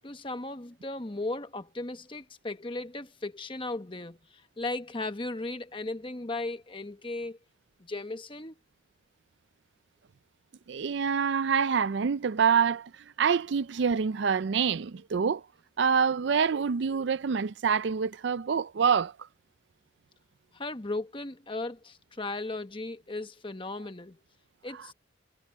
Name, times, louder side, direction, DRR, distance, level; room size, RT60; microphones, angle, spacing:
voice 1, 0.0-7.4 7.8-8.5 20.5-24.2 24.6-24.9, left 2 dB, 25° left, 1.1 m, -36 dB
voice 2, 10.7-15.4 15.8-19.1 24.7-24.9, right 6 dB, 60° right, 0.4 m, -26 dB
head